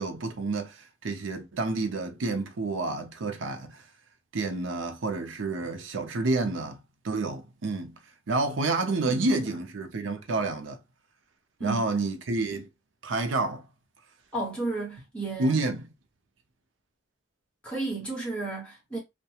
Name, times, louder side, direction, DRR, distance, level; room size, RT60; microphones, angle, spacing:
voice 1, 0.0-3.8 4.3-8.0 8.3-10.8 11.6-12.7 13.0-13.6 15.4-15.9, right 3 dB, 85° right, 0.6 m, -29 dB
voice 2, 9.0-9.6 11.6-11.8 14.3-15.5 17.6-19.0, right 3 dB, 5° left, 1.2 m, -33 dB
2.3 x 2.2 x 2.8 m
head